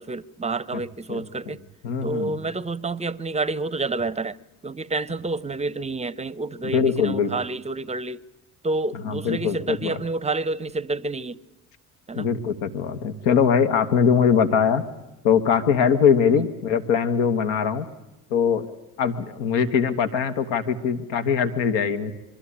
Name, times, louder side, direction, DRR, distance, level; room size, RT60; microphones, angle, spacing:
voice 1, 0.0-1.6 2.0-4.4 4.6-8.2 8.6-11.4 12.1-12.3 16.4-16.5, right 3 dB, 15° right, 0.7 m, -29 dB
voice 2, 1.8-2.4 6.6-7.3 9.0-10.0 12.2-14.8 15.2-17.9 18.3-18.7 19.0-22.1, left 7 dB, 75° left, 1.5 m, -22 dB
23.5 x 13.0 x 9.9 m
hypercardioid pair, 60°, 43 cm